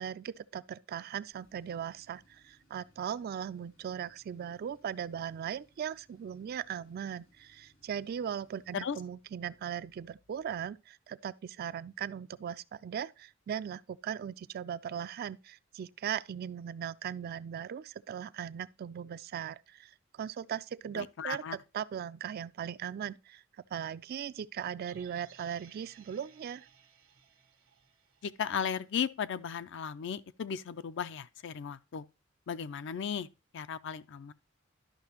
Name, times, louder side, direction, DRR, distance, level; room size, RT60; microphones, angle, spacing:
voice 1, 0.0-23.4 23.7-26.7, right 8 dB, 50° right, 0.3 m, -39 dB
Tools, 1.3-10.8, equal, 90° left, 3.2 m, -69 dB
voice 2, 20.9-21.6 28.2-32.0 32.5-33.3 33.5-34.3, left 7 dB, 65° left, 0.4 m, -36 dB
sound 1, 24.8-29.0 29.4-29.5, right 7 dB, 75° right, 1.0 m, -59 dB
11.5 x 5.7 x 2.9 m
head